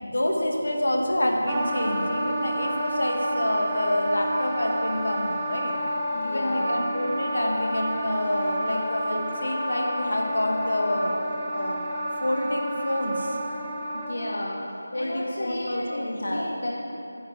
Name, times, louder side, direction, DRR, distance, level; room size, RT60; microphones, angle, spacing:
voice 1, 0.0-5.8 6.2-11.2 11.5-11.9 12.2-13.4 14.9-16.4, left 1 dB, 85° left, 0 dB, 1.6 m, -27 dB
Wind instrument woodwind instrument, 1.5-14.4, equal, 15° right, 0.6 m, -30 dB
voice 2, 6.1-6.7 13.9-14.6 14.9-16.8, left 1 dB, 60° left, -3 dB, 1.0 m, -33 dB
9.1 x 8.8 x 4.9 m, 2.8 s
figure-of-eight pair, 175°, 0 cm